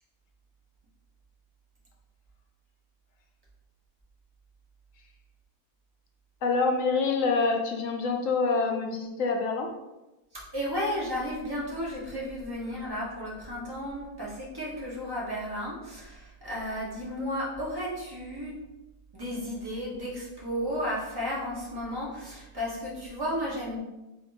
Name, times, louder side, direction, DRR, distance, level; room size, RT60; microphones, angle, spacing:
voice 1, 6.4-9.7, left 4 dB, 70° left, 3 dB, 0.9 m, -26 dB
voice 2, 10.5-18.5 19.1-23.8, equal, 20° right, -6 dB, 0.9 m, -33 dB
3.8 x 3.6 x 2.6 m, 1.0 s
omnidirectional pair, 1.5 m